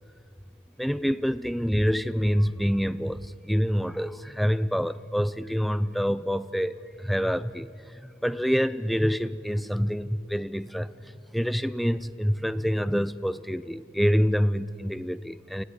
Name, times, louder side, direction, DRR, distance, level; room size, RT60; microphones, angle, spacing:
voice 1, 0.8-15.6, equal, ahead, 14 dB, 0.5 m, -27 dB
28.0 x 16.0 x 9.8 m, 2.5 s
head